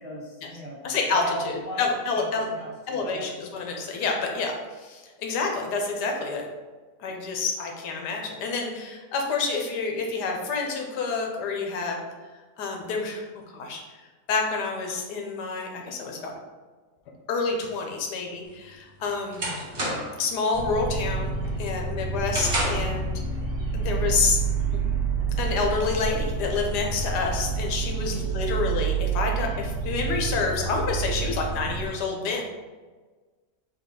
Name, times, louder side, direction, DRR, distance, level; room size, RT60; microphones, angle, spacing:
voice 1, 0.0-0.8 1.1-3.3 28.0-28.2, equal, 10° right, -6 dB, 0.6 m, -37 dB
voice 2, 0.8-2.5 2.9-6.5 7.0-12.0 12.6-13.8 14.3-16.3 17.3-19.5 20.2-21.3 21.6-23.2 23.7-24.4 24.7-24.8 25.4-32.4, left 4 dB, 80° left, 1 dB, 1.3 m, -28 dB
sound 1, 18.5-20.3 20.7-21.0 21.4-23.0, right 1 dB, 40° right, 1.2 m, -30 dB
sound 2, 20.5-31.9, right 5 dB, 60° right, 0.9 m, -28 dB
4.0 x 2.8 x 3.7 m, 1.3 s
omnidirectional pair, 1.8 m